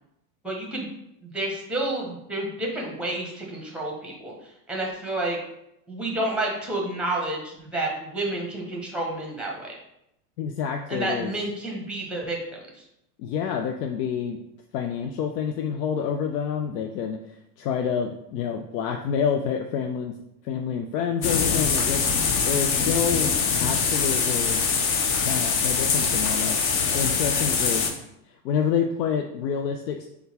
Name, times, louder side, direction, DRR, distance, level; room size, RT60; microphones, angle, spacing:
voice 1, 0.4-0.8 1.2-4.3 4.7-5.4 5.9-9.7 10.9-12.8, right 1 dB, ahead, 0 dB, 0.7 m, -30 dB
voice 2, 10.4-11.3 13.2-14.4 14.7-20.1 20.4-23.3 23.6-24.6 25.2-27.9 28.4-30.1, left 7 dB, 80° left, 4 dB, 0.5 m, -28 dB
sound 1, 21.2-27.9, left 5 dB, 30° left, 0.3 m, -23 dB
3.7 x 2.3 x 4.2 m, 0.82 s
supercardioid pair, 115°, 48 cm